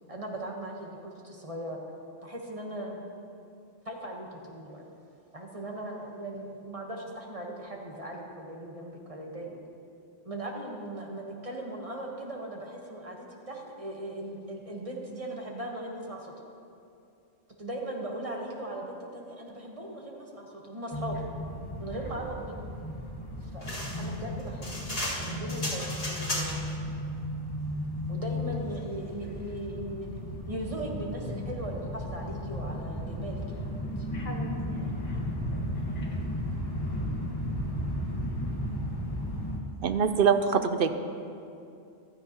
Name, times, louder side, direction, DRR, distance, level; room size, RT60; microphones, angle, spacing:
voice 1, 0.1-1.8 2.2-3.0 3.8-4.8 5.3-9.6 10.2-16.3 17.6-21.3 21.8-22.7 23.4-24.8 25.3-26.6 28.1-30.1 30.5-34.1, right 1 dB, 30° right, 1.3 m, -38 dB
sound 1, 20.9-39.6, equal, 20° left, 1.2 m, -34 dB
sound 2, 23.6-26.7, left 1 dB, 55° left, 2.3 m, -35 dB
voice 2, 28.5-28.8 34.1-36.2, left 1 dB, 80° left, 2.3 m, -45 dB
voice 3, 39.8-40.9, right 6 dB, 60° right, 0.7 m, -23 dB
15.0 x 12.5 x 2.9 m
omnidirectional pair, 1.2 m